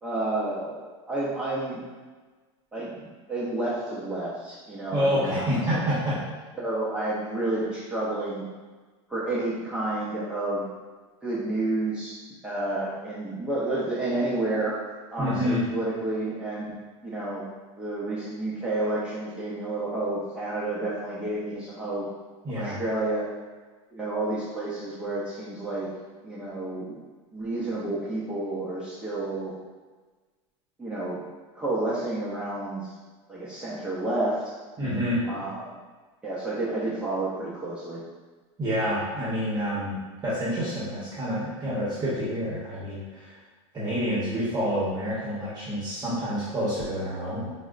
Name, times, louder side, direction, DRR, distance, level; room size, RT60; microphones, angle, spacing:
voice 1, 0.0-1.8 2.7-5.8 6.6-8.4 9.1-10.7 11.2-12.2 12.4-14.8 15.1-16.7 17.0-17.5 17.8-22.1 22.5-23.3 23.9-25.9 26.2-27.0 27.3-29.5 30.8-31.2 31.5-32.9 33.3-34.4 35.3-35.8 36.2-38.0, right 2 dB, 5° right, -9 dB, 0.5 m, -30 dB
voice 2, 4.9-6.2 15.2-15.6 22.4-22.8 34.8-35.2 38.6-40.0 40.2-43.4 43.7-47.5, equal, 25° right, -9 dB, 0.9 m, -28 dB
4.7 x 2.1 x 2.4 m, 1.3 s
supercardioid pair, 130°, 16 cm